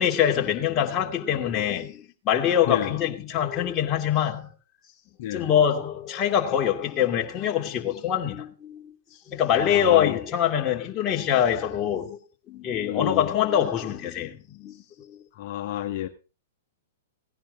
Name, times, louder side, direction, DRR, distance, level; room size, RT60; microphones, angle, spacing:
voice 1, 0.0-4.5 5.3-8.9 9.3-12.2 12.5-15.2, left 9 dB, 30° left, 2.6 m, -24 dB
voice 2, 5.2-5.5 9.5-10.2 12.9-13.3 15.3-16.1, left 13 dB, 50° left, 1.7 m, -30 dB
17.5 x 11.0 x 3.9 m
hypercardioid pair, 115°, 0 cm